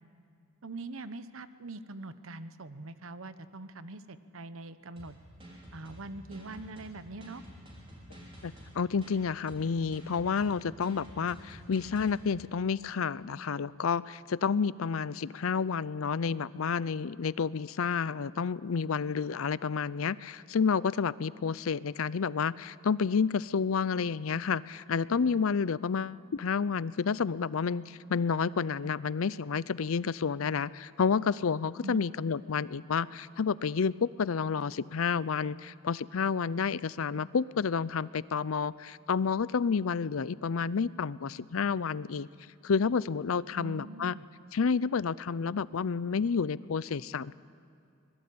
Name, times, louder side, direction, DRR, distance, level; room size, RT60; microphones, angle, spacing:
voice 1, 0.6-5.1 5.7-7.4 31.8-32.0 43.5-44.2, right 2 dB, 70° right, 12 dB, 1.0 m, -43 dB
sound 1, 5.0-12.2, equal, 25° right, 5.6 m, -50 dB
voice 2, 8.4-42.3 42.6-44.1 44.5-47.3, left 5 dB, 75° left, 19 dB, 0.5 m, -30 dB
24.5 x 21.0 x 8.6 m, 2.5 s
head